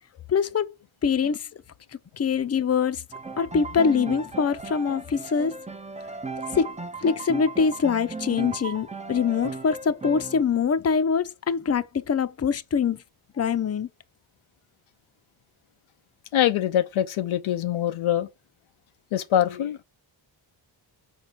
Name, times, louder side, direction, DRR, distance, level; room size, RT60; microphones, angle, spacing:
voice 1, 0.3-0.7 1.0-1.5 2.2-3.0 3.4-5.6 6.5-13.0 13.4-13.9, left 6 dB, 30° left, 0.7 m, -24 dB
Piano, 3.1-10.4, right 3 dB, 15° right, 0.7 m, -36 dB
voice 2, 16.3-18.3 19.1-19.8, left 11 dB, 85° left, 0.7 m, -24 dB
5.7 x 4.6 x 5.0 m
cardioid pair, 55°, 47 cm